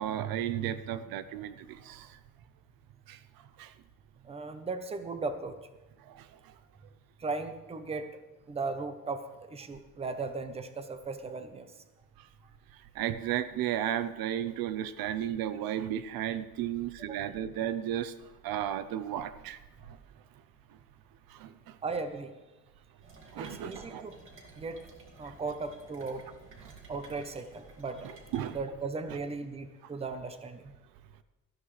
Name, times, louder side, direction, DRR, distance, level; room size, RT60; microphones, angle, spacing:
voice 1, 0.0-2.2 3.1-3.2 3.6-3.7 6.1-6.3 12.9-18.1 18.4-19.6 19.9-20.0 21.3-21.8 23.3-24.1 25.2-25.3 28.0-28.6, right 11 dB, 80° right, 13 dB, 0.7 m, -34 dB
voice 2, 4.2-5.6 7.2-8.1 8.5-11.8 17.1-17.2 21.8-22.3 23.4-24.2 24.6-24.8 25.2-26.3 26.9-28.1 28.5-30.7, right 3 dB, 15° right, 9 dB, 0.7 m, -37 dB
sound 1, 23.0-28.6, right 2 dB, 35° right, 2.3 m, -54 dB
18.0 x 13.0 x 3.3 m, 1.1 s
cardioid pair, 160°, 35 cm